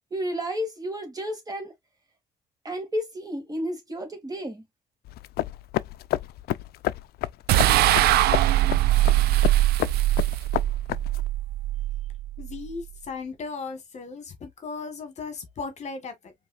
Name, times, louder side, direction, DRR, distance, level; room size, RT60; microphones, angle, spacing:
voice 1, 0.1-1.7 2.6-4.6, equal, 20° right, 2.1 m, -31 dB
sound 1, 5.0-11.3, left 15 dB, 65° left, 0.4 m, -31 dB
sound 2, 7.5-12.8, right 14 dB, 70° right, 0.4 m, -22 dB
voice 2, 12.4-16.3, left 4 dB, 40° left, 1.4 m, -36 dB
4.7 x 3.2 x 2.4 m
cardioid pair, 110°, 17 cm